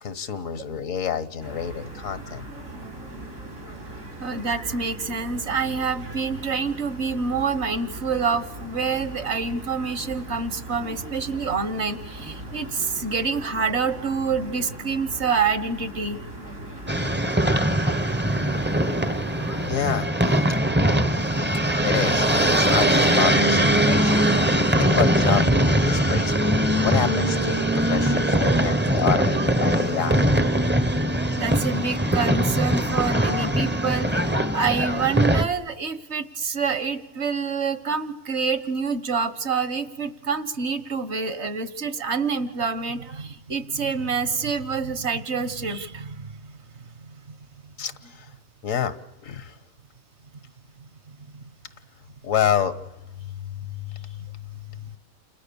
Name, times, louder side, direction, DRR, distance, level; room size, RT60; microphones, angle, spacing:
voice 1, 0.0-2.5 19.6-20.6 21.8-25.5 25.8-30.3 47.8-48.3 48.6-49.0 49.2-49.6 52.2-52.8 53.1-55.0, left 9 dB, 75° left, 13 dB, 1.6 m, -29 dB
sound 1, 1.4-19.7, right 1 dB, 80° right, 6.0 m, -39 dB
voice 2, 4.2-16.2 31.4-46.5 51.3-51.4, right 5 dB, 55° right, 13 dB, 1.5 m, -27 dB
sound 2, 16.9-35.4, right 1 dB, 10° right, 0.7 m, -21 dB
29.0 x 28.5 x 7.0 m, 0.98 s
omnidirectional pair, 1.4 m